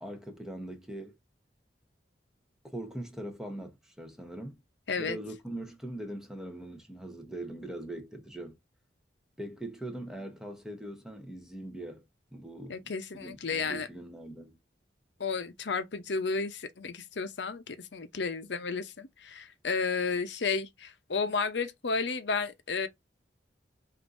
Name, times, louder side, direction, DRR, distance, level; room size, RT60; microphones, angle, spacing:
voice 1, 0.0-1.2 2.6-4.6 5.0-8.6 9.4-14.6, right 1 dB, 5° right, 0.9 m, -41 dB
voice 2, 4.9-5.2 12.7-13.9 15.2-22.9, left 4 dB, 70° left, 0.7 m, -32 dB
5.2 x 2.6 x 2.5 m
head